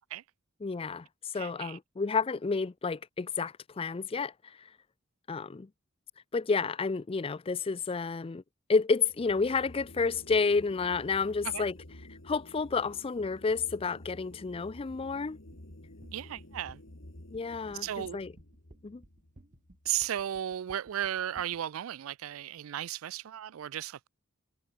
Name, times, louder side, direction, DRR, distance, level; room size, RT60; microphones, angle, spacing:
voice 1, 0.6-4.3 5.3-5.7 6.3-8.4 8.7-11.8 12.2-15.4 17.3-17.9 18.1-18.3 18.8-19.0, left 4 dB, 25° left, 0.4 m, -30 dB
voice 2, 1.3-1.8 11.4-11.6 16.1-16.8 17.7-18.2 19.8-24.1, right 11 dB, 85° right, 0.4 m, -35 dB
Chorus Low Note, 9.0-20.4, left 1 dB, 65° left, 2.8 m, -51 dB
sound 1, 15.5-21.6, right 1 dB, 40° right, 1.1 m, -56 dB
head